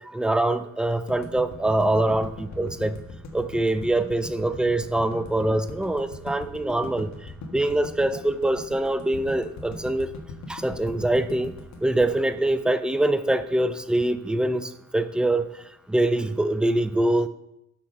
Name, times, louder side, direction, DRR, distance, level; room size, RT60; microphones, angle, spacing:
voice 1, 0.1-2.3 2.6-3.0 3.3-7.1 7.5-10.1 10.5-11.5 11.8-15.5 15.9-17.3, right 1 dB, 5° right, 11 dB, 0.5 m, -24 dB
sound 1, 1.1-13.3, left 2 dB, 65° left, 1.5 m, -40 dB
6.0 x 5.8 x 6.6 m, 0.83 s
cardioid pair, 90°, 30 cm